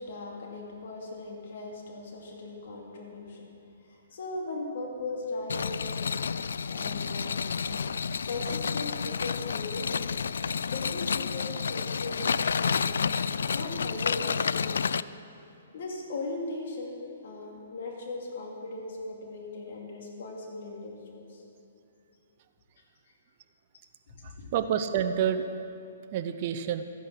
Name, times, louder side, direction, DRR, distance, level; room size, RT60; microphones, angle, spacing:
voice 1, 0.0-3.4 3.9-6.1 6.7-7.9 8.3-10.1 10.6-12.3 12.6-14.9 15.7-21.4 24.4-24.5, left 2 dB, 60° left, -1 dB, 2.5 m, -38 dB
sound 1, 5.5-15.0, left 6 dB, 80° left, 0.3 m, -30 dB
voice 2, 24.2-25.5 26.1-26.8, right 9 dB, 40° right, 7 dB, 0.7 m, -28 dB
13.5 x 10.0 x 5.7 m, 2.6 s
hypercardioid pair, 145°, 0 cm